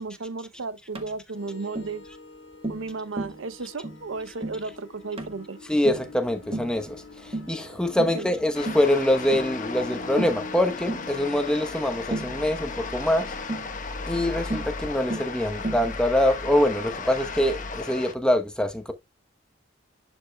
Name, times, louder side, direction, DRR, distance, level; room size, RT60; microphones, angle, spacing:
voice 1, 0.0-2.0 2.7-5.6 8.1-8.3, right 3 dB, 90° right, 0.7 m, -34 dB
Tap, 0.9-1.1 1.8-2.0 2.6-2.9 3.2-3.4 3.8-4.0 4.4-4.6 5.2-5.4 5.8-6.1 6.5-6.8 7.3-7.6 8.0-8.2 8.7-8.9 9.3-9.5 10.2-10.4 10.9-11.1 12.1-12.4 13.5-13.7 14.5-14.7 15.1-15.3 15.6-15.9, right 2 dB, 30° right, 1.2 m, -33 dB
sound 1, 1.3-17.9, left 2 dB, 80° left, 1.4 m, -42 dB
voice 2, 5.7-7.0 7.5-13.2 14.1-18.9, left 1 dB, 5° left, 1.0 m, -24 dB
sound 2, 8.5-18.1, left 4 dB, 40° left, 1.2 m, -36 dB
11.0 x 5.3 x 2.3 m
head